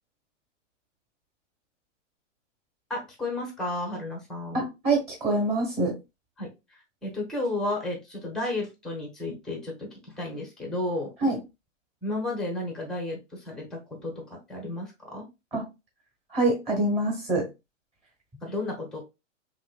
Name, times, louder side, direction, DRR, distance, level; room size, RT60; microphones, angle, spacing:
voice 1, 2.9-4.6 6.4-9.9 10.2-11.1 12.0-15.2 18.4-19.0, left 2 dB, ahead, 1 dB, 0.6 m, -33 dB
voice 2, 4.5-5.9 11.2-11.4 15.5-15.7 16.3-17.5, right 2 dB, 15° right, 0 dB, 1.3 m, -25 dB
3.1 x 2.8 x 2.3 m, 0.24 s
hypercardioid pair, 140°, 38 cm